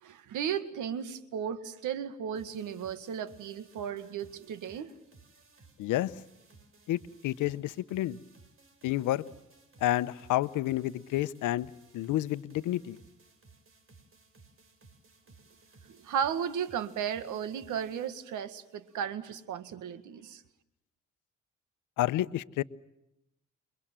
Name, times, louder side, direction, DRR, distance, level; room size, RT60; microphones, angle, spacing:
voice 1, 0.0-4.9 15.9-20.4, right 8 dB, 80° right, 2.0 m, -35 dB
sound 1, 2.3-19.0, right 3 dB, 45° right, 5.1 m, -60 dB
voice 2, 5.8-6.1 6.9-8.2 8.8-9.2 9.8-13.0 22.0-22.6, left 14 dB, 90° left, 0.9 m, -30 dB
29.0 x 23.5 x 7.6 m
cardioid pair, 90°, 30 cm